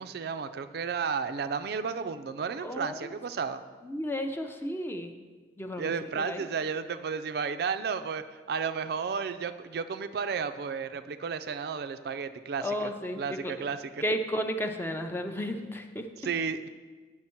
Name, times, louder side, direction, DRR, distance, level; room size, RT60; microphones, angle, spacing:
voice 1, 0.0-3.6 5.8-14.0 16.2-16.7, right 5 dB, 60° right, 10 dB, 0.4 m, -33 dB
voice 2, 2.6-3.1 3.9-5.1 5.6-5.9 6.3-6.4 12.6-13.2 14.0-16.0, equal, 15° left, 6 dB, 0.5 m, -32 dB
8.6 x 6.2 x 4.4 m, 1.3 s
head